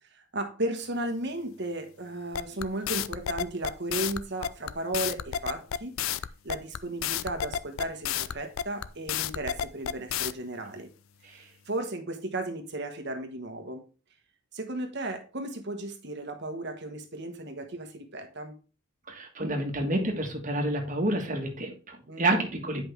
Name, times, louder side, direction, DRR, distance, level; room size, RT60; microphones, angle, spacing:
voice 1, 0.1-5.9 6.4-10.9 11.2-13.9 14.5-18.6 22.1-22.4, right 1 dB, 55° right, 6 dB, 1.3 m, -35 dB
sound 1, 2.3-10.3, left 9 dB, 80° left, 0.4 m, -31 dB
voice 2, 19.1-22.8, right 1 dB, 40° right, 2 dB, 1.7 m, -29 dB
9.3 x 5.4 x 3.4 m, 0.34 s
head